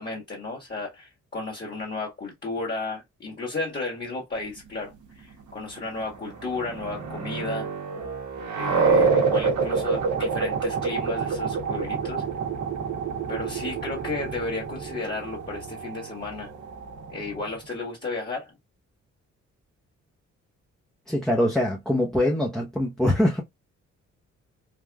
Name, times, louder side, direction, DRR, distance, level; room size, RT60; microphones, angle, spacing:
voice 1, 0.0-7.7 8.5-12.2 13.3-16.5 17.1-18.5, left 3 dB, 35° left, 1.7 m, -33 dB
sound 1, 6.1-17.5, right 5 dB, 75° right, 1.0 m, -27 dB
voice 2, 21.1-23.4, left 1 dB, ahead, 0.8 m, -23 dB
3.4 x 2.4 x 2.3 m
cardioid pair, 60°, 30 cm